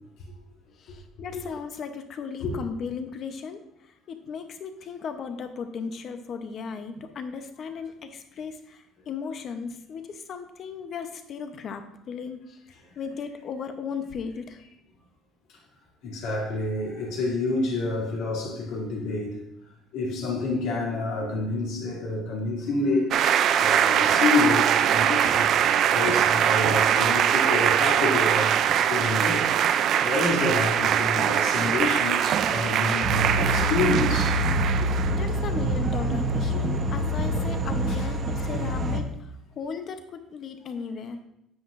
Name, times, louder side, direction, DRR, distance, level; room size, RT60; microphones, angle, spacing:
voice 1, 0.8-12.6 13.0-14.6 35.1-41.2, left 5 dB, 35° left, 8 dB, 0.7 m, -36 dB
voice 2, 16.0-19.4 19.9-23.1 23.6-25.5 25.9-28.6 28.9-29.5 30.0-34.4 36.5-36.6 37.4-37.5 38.0-38.1, left 3 dB, 70° left, -3 dB, 2.6 m, -28 dB
sound 1, 23.1-35.2, right 9 dB, 45° right, 0.3 m, -22 dB
sound 2, 33.0-39.0, right 1 dB, 30° right, 0.8 m, -26 dB
9.9 x 8.1 x 2.5 m, 0.79 s
cardioid pair, 170°, 0 cm